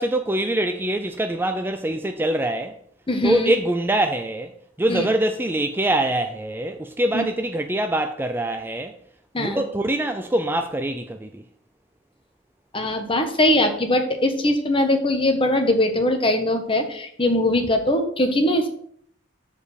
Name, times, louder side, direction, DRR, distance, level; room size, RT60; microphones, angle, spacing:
voice 1, 0.0-2.7 3.2-4.5 4.8-9.0 9.4-11.4, right 1 dB, 10° right, 0.4 m, -24 dB
voice 2, 3.1-3.5 4.9-5.1 7.1-7.2 9.3-9.6 12.7-18.7, left 1 dB, 25° left, 1.1 m, -21 dB
7.4 x 5.0 x 6.5 m
head